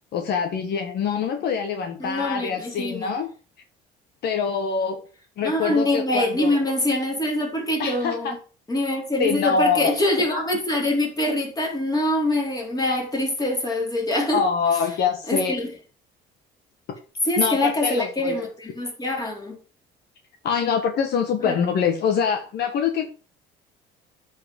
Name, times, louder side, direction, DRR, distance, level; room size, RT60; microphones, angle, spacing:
voice 1, 0.1-3.3 4.2-5.0 5.4-6.6 7.8-8.3 9.2-9.9 14.3-15.5 17.4-18.3 20.4-23.0, left 6 dB, 65° left, 1.5 m, -24 dB
voice 2, 2.0-3.1 5.4-8.4 8.7-14.5 15.3-15.7 17.2-19.6 21.4-21.5, left 1 dB, 20° left, 4.1 m, -24 dB
9.8 x 4.9 x 5.3 m
cardioid pair, 100°, 18 cm